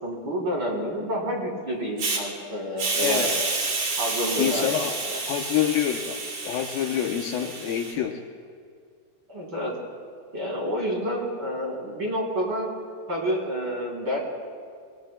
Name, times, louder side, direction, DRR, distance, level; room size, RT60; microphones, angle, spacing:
voice 1, 0.0-3.3 4.0-4.7 5.1-5.2 9.3-9.7 10.3-12.7 13.1-14.2, equal, 30° right, -3 dB, 3.6 m, -29 dB
Hiss, 2.0-2.2 2.8-7.9, right 3 dB, 55° right, 4.0 m, -29 dB
voice 2, 2.9-3.3 4.4-4.9 5.3-8.2, left 10 dB, 75° left, 1 dB, 2.4 m, -27 dB
27.5 x 23.0 x 2.3 m, 2.2 s
omnidirectional pair, 4.6 m